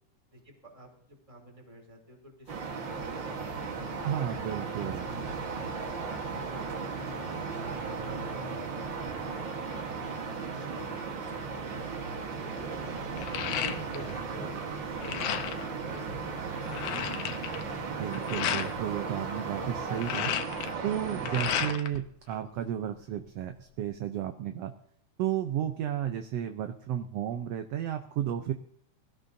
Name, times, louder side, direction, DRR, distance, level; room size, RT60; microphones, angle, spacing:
voice 1, 0.3-4.3 4.8-7.1 7.7-10.1 10.5-13.1 13.6-17.0, equal, 10° right, 0 dB, 2.9 m, -52 dB
sound 1, 2.4-20.3, left 4 dB, 40° left, 2.3 m, -52 dB
sound 2, 2.5-21.7, right 5 dB, 50° right, 1.7 m, -36 dB
voice 2, 4.0-5.0 18.0-20.3 20.8-24.7 25.2-28.5, right 10 dB, 75° right, 7 dB, 1.6 m, -33 dB
sound 3, 11.8-12.0 12.5-14.2 14.5-15.7 16.2-16.3 16.5-18.7 19.7-22.0 22.3-23.2, left 10 dB, 85° left, 2.3 m, -34 dB
21.5 x 13.0 x 2.7 m, 0.68 s
omnidirectional pair, 3.4 m